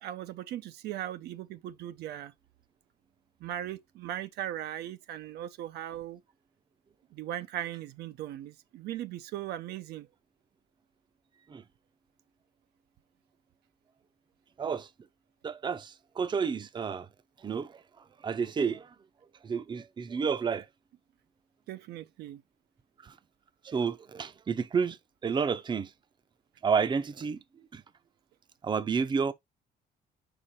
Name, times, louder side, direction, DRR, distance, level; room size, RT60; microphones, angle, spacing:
voice 1, 0.0-2.3 3.4-6.2 7.1-10.1 21.7-22.4, right 12 dB, 75° right, 0.7 m, -38 dB
voice 2, 15.4-17.1 17.4-17.7 18.2-18.9 19.4-20.6 23.0-23.1 23.6-25.0 25.2-25.9 26.6-27.4 27.7-27.8 28.6-29.3, right 6 dB, 25° right, 0.6 m, -30 dB
5.0 x 4.8 x 4.3 m
cardioid pair, 110°, 17 cm